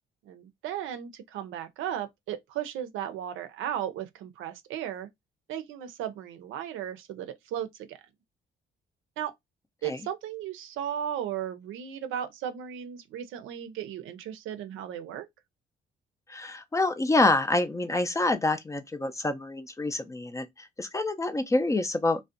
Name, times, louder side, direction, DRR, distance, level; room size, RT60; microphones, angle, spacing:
voice 1, 0.3-5.1 5.5-8.0 9.2-9.3 9.8-15.3, right 10 dB, 85° right, 0.5 m, -35 dB
voice 2, 16.3-22.2, left 2 dB, 15° left, 0.4 m, -27 dB
2.5 x 2.1 x 2.4 m
cardioid pair, 90°, 20 cm